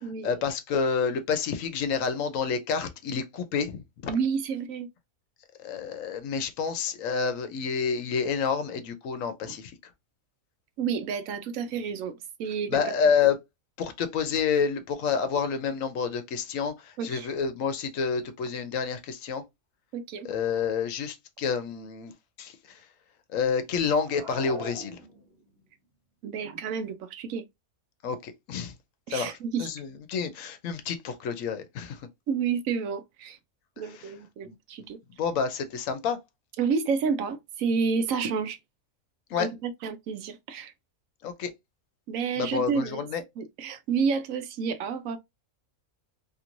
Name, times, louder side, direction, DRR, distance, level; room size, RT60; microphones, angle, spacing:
voice 1, 0.0-4.1 5.6-9.7 12.7-13.4 13.8-19.4 20.2-22.1 22.4-22.8 23.3-25.0 28.0-28.7 29.1-32.1 33.8-34.1 34.4-34.5 35.2-36.2 39.3-39.5 41.2-41.5 42.4-43.2, left 6 dB, 75° left, 1.0 m, -29 dB
voice 2, 4.1-4.9 10.8-12.8 17.0-17.3 19.9-20.3 26.2-27.4 29.1-29.7 32.3-33.4 33.8-35.0 36.6-38.6 39.4-40.7 42.1-43.0 43.4-45.2, right 6 dB, 75° right, 0.9 m, -30 dB
sound 1, 24.0-25.6, right 1 dB, 50° right, 1.2 m, -41 dB
2.9 x 2.9 x 2.5 m
omnidirectional pair, 1.5 m